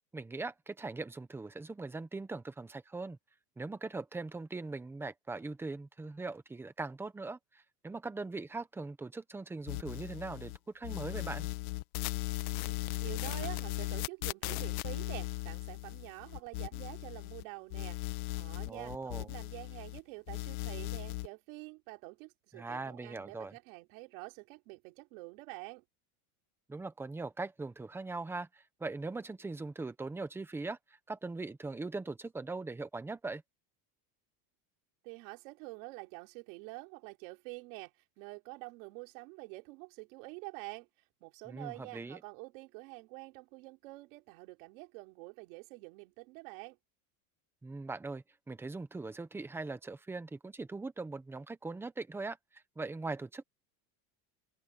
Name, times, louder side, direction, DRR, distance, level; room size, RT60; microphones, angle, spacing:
voice 1, 0.1-3.2 3.6-11.5 18.7-19.3 22.5-23.5 26.7-30.8 31.1-33.4 41.4-42.2 47.6-53.4, right 3 dB, 5° right, 0.8 m, -41 dB
sound 1, 9.7-10.6 10.8-17.4 17.7-20.0 20.3-21.3, left 19 dB, 80° left, 1.2 m, -38 dB
voice 2, 12.6-25.8 35.0-40.9 41.2-46.8, right 26 dB, 65° right, 3.9 m, -47 dB
open air
cardioid pair, 175°, 42 cm